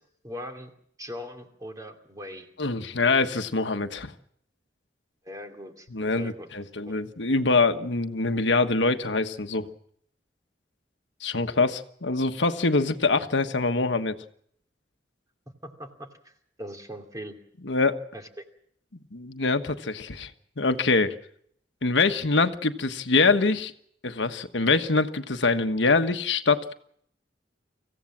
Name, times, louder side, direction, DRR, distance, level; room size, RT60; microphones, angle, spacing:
voice 1, 0.2-0.7 1.0-2.5 5.2-5.9 6.1-6.5 15.6-16.3 16.6-17.4 18.1-18.4, equal, 20° right, 4 dB, 2.6 m, -40 dB
voice 2, 2.6-4.1 5.9-9.7 11.2-14.2 17.6-18.0 19.1-20.3 20.6-21.2 21.8-23.7 24.0-26.7, left 3 dB, 85° left, 8 dB, 1.4 m, -24 dB
25.5 x 16.0 x 7.4 m, 0.66 s
head